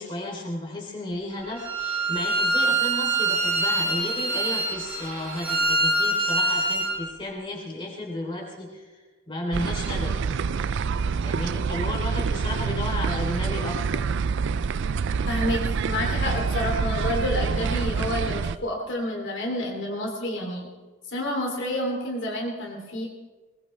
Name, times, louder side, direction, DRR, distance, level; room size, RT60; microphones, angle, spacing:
voice 1, 0.0-10.7 11.2-14.0, left 1 dB, 20° left, -2 dB, 3.4 m, -33 dB
Bowed string instrument, 1.6-7.0, right 2 dB, 90° right, 4.5 m, -25 dB
sound 1, 9.5-18.5, right 5 dB, 55° right, 0.4 m, -26 dB
voice 2, 15.3-20.7 21.1-23.1, left 1 dB, 55° left, -1 dB, 3.0 m, -29 dB
21.0 x 19.5 x 3.3 m, 1.3 s
head